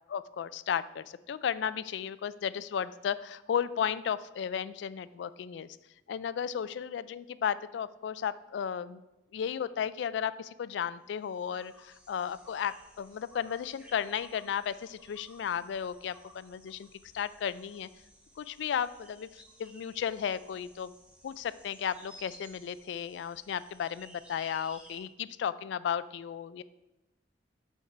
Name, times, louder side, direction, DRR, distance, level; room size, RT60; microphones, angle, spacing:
voice 1, 0.1-5.7 6.1-9.0 9.3-16.9 17.1-17.9 18.4-20.9 21.2-26.6, left 8 dB, 75° left, 16 dB, 0.3 m, -34 dB
sound 1, 11.2-25.0, equal, 5° right, 0.8 m, -56 dB
7.0 x 4.6 x 4.9 m, 0.98 s
head